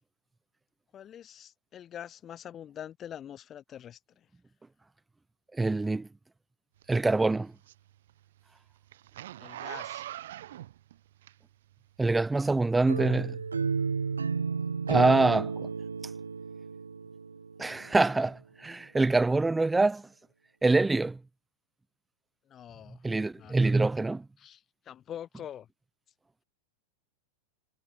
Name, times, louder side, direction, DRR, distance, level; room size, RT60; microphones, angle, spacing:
voice 1, 0.9-4.3 9.4-10.0 22.5-23.0 23.3-23.7 24.4-25.7, left 10 dB, 25° left, 0.9 m, -45 dB
voice 2, 5.5-6.1 6.9-7.5 12.0-13.4 14.9-15.7 17.6-20.1 20.6-21.2 23.0-24.2, right 3 dB, 10° right, 0.5 m, -25 dB
Zipper (clothing), 6.8-11.8 12.3-12.4, right 13 dB, 60° right, 0.9 m, -42 dB
sound 1, 12.9-17.8, right 5 dB, 75° right, 0.5 m, -32 dB
figure-of-eight pair, 90°, 0 cm